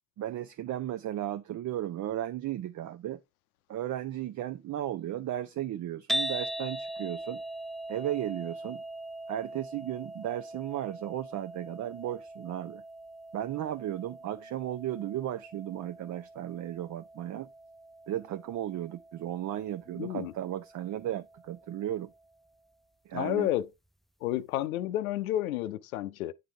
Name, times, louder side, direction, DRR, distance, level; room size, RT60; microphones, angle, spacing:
voice 1, 0.2-3.2 3.7-7.4 7.9-8.8 9.3-12.8 13.3-17.5 18.1-22.1 23.1-23.5, right 12 dB, 45° right, 0.7 m, -35 dB
sound 1, 6.1-22.3, right 1 dB, ahead, 0.4 m, -41 dB
voice 2, 20.0-20.3 23.1-23.7 24.2-26.3, left 13 dB, 90° left, 0.6 m, -31 dB
9.4 x 3.9 x 4.4 m
hypercardioid pair, 65°, 42 cm